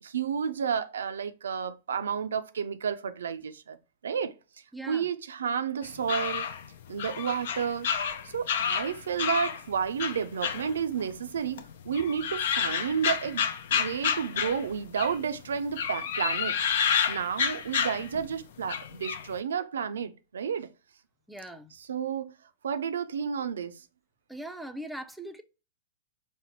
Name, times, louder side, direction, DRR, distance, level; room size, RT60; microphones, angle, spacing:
voice 1, 0.0-3.8 4.0-4.3 4.9-6.5 6.9-7.9 8.2-13.5 13.7-16.6 17.1-20.7 21.7-22.3 22.6-23.8, right 7 dB, 80° right, 0.4 m, -31 dB
voice 2, 4.7-5.1 21.3-21.7 24.3-25.4, right 1 dB, ahead, 0.4 m, -40 dB
sound 1, 5.8-9.6 10.0-11.3 11.6-15.2 15.7-18.3 18.7-19.3, left 7 dB, 70° left, 0.4 m, -30 dB
4.1 x 2.1 x 2.9 m
hypercardioid pair, 110°, 0 cm